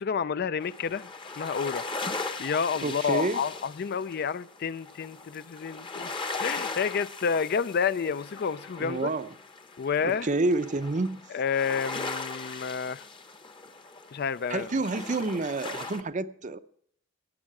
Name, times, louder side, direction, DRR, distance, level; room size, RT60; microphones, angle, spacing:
voice 1, 0.0-1.1 1.4-1.8 2.4-6.1 6.4-9.1 9.8-10.3 11.3-13.1 14.1-14.7, left 6 dB, 50° left, 0.4 m, -29 dB
sound 1, 0.6-16.0, left 3 dB, 25° left, 0.9 m, -39 dB
voice 2, 2.8-3.4 8.8-9.3 10.0-11.2 14.5-16.6, right 2 dB, 35° right, 0.6 m, -29 dB
16.5 x 9.7 x 4.8 m
head